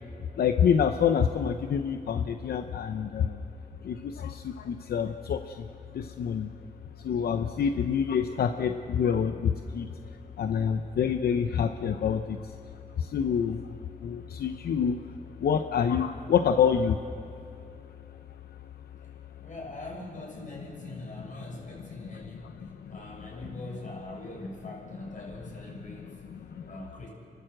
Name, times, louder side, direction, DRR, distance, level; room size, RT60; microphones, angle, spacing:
voice 1, 0.4-3.5 3.8-5.7 5.9-6.5 7.0-9.9 10.4-12.5 13.0-15.0 15.4-17.0 22.1-22.9 26.3-26.7, left 7 dB, 85° left, 8 dB, 0.7 m, -27 dB
voice 2, 19.4-27.1, left 1 dB, 55° left, -2 dB, 7.0 m, -43 dB
29.5 x 12.5 x 7.8 m, 2.5 s
cardioid pair, 75°, 16 cm